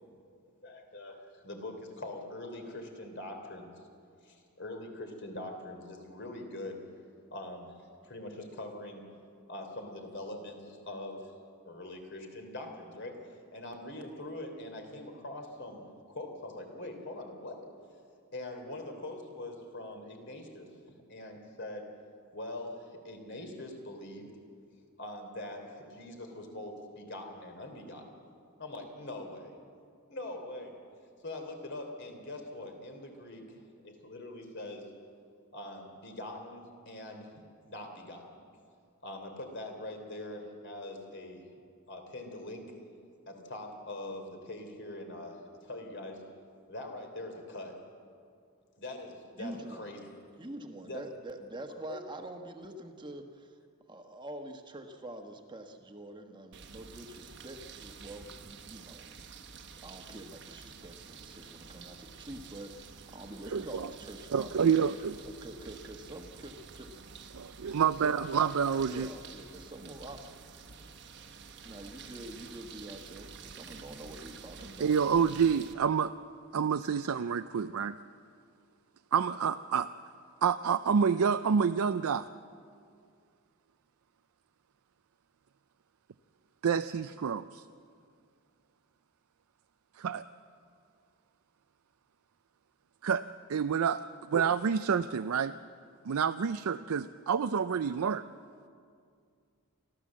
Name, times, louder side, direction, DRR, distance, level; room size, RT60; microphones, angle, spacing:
voice 1, 0.6-1.2 1.4-3.7 4.2-6.8 7.3-9.0 9.5-11.3 11.6-13.2 13.5-17.6 18.3-21.9 22.3-24.3 25.0-28.1 28.6-29.5 30.1-30.8 31.2-34.8 35.5-38.2 39.0-41.4 41.9-42.7 43.3-46.2 46.7-47.8 48.8-50.1 50.8-51.0 51.9-52.0, left 1 dB, 55° left, 4 dB, 3.2 m, -43 dB
voice 2, 49.4-49.9 50.4-53.6 53.9-59.3 59.8-66.9 68.9-70.2 71.6-75.3, right 1 dB, 20° right, 5 dB, 1.3 m, -46 dB
sound 1, 56.5-75.7, right 5 dB, 55° right, 1.2 m, -49 dB
voice 3, 63.5-63.9 64.3-65.3 67.3-69.1 74.8-76.1 76.5-78.0 79.1-79.9 80.4-82.3 86.6-87.6 90.0-90.2 93.0-93.2 93.5-95.5 96.0-98.2, right 6 dB, 75° right, 10 dB, 0.4 m, -28 dB
29.0 x 13.0 x 7.5 m, 2.3 s
head